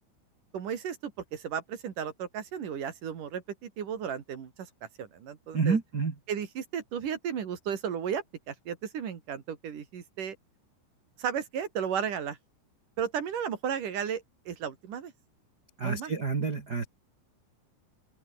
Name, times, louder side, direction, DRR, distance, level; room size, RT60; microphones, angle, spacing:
voice 1, 0.5-4.7 5.0-5.8 6.3-10.4 11.2-12.4 13.0-15.1 15.8-16.1, right 8 dB, 50° right, 3.5 m, -34 dB
voice 2, 5.5-6.1 15.8-16.8, right 5 dB, 90° right, 0.8 m, -28 dB
open air
omnidirectional pair, 5.7 m